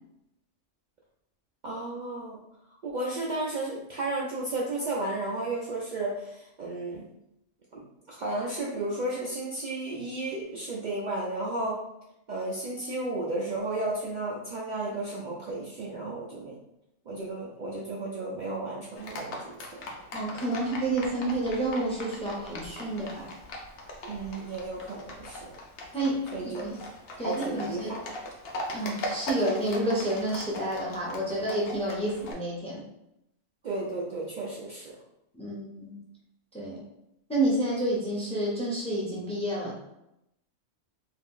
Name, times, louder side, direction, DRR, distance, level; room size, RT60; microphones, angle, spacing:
voice 1, 1.6-2.4 2.8-7.0 7.7-11.8 12.3-16.6 17.1-19.7 24.0-25.5 26.3-26.7 27.2-28.0 33.6-35.0, right 2 dB, 90° right, -4 dB, 0.4 m, -33 dB
Livestock farm animals working animals, 19.0-32.3, left 1 dB, 60° left, 0.7 m, -40 dB
voice 2, 20.1-23.3 25.9-26.8 27.2-27.9 28.7-32.8 35.3-36.0 36.5-36.8 37.3-39.7, right 1 dB, 10° left, -4 dB, 0.4 m, -29 dB
2.8 x 2.4 x 3.6 m, 0.84 s
omnidirectional pair, 1.4 m